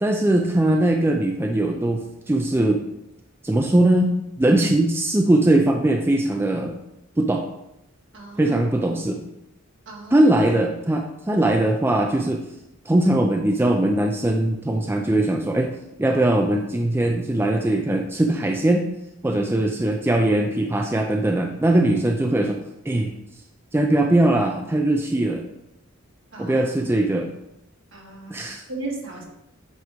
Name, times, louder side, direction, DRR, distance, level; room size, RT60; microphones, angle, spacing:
voice 1, 0.0-2.9 3.4-6.8 7.2-7.4 8.4-9.2 10.1-12.4 12.9-15.7 16.0-18.9 19.2-22.6 22.9-23.1 23.7-25.4 26.4-27.3 28.3-28.6, right 1 dB, 10° right, 2 dB, 0.3 m, -20 dB
voice 2, 8.1-8.6 9.9-10.2 26.3-26.8 27.9-29.2, right 3 dB, 65° right, -1 dB, 1.5 m, -36 dB
7.9 x 3.0 x 4.7 m, 0.86 s
head